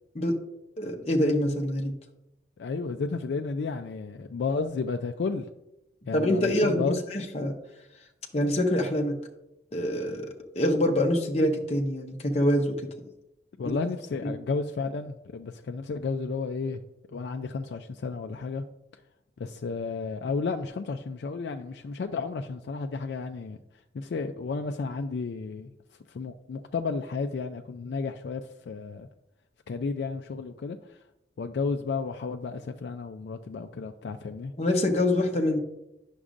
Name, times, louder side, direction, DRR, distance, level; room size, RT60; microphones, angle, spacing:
voice 1, 0.8-1.9 6.1-7.5 8.3-9.1 9.7-12.8 13.6-13.7 20.2-20.3 34.6-35.6, left 1 dB, 35° left, 2 dB, 0.7 m, -25 dB
voice 2, 2.6-5.5 6.1-7.0 13.6-16.8 17.1-18.6 19.4-23.6 23.9-25.7 26.1-29.1 29.7-31.0 31.4-34.5, left 4 dB, 65° left, 5 dB, 0.3 m, -32 dB
9.6 x 6.1 x 2.5 m, 0.89 s
head